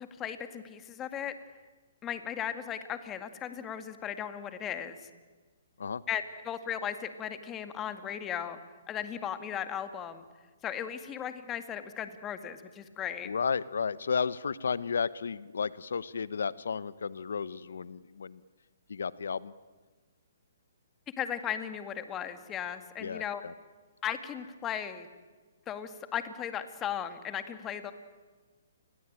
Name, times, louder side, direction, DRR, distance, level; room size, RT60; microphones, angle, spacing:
voice 1, 0.0-1.4 2.0-5.0 6.1-8.6 8.9-10.3 10.6-13.3 21.2-23.4 24.0-25.1 25.7-27.9, left 9 dB, 20° left, 9 dB, 2.1 m, -36 dB
voice 2, 13.2-18.4 18.9-19.5 23.0-23.5, left 6 dB, 75° left, 18 dB, 1.0 m, -33 dB
29.5 x 21.5 x 9.0 m, 1.3 s
hypercardioid pair, 140°, 0 cm